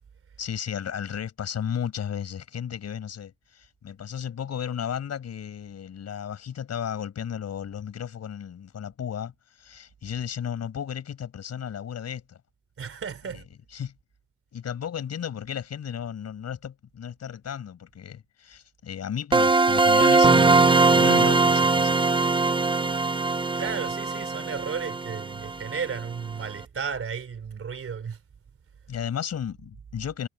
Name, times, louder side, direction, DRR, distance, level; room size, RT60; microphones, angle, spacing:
voice 1, 0.4-12.4 13.7-13.9 14.5-22.0 28.9-30.3, left 8 dB, 60° left, 6.9 m, -34 dB
voice 2, 12.8-13.4 23.5-28.2, right 6 dB, 45° right, 3.7 m, -34 dB
sound 1, 19.3-26.0, right 3 dB, 15° right, 0.6 m, -21 dB
cardioid pair, 90°, 30 cm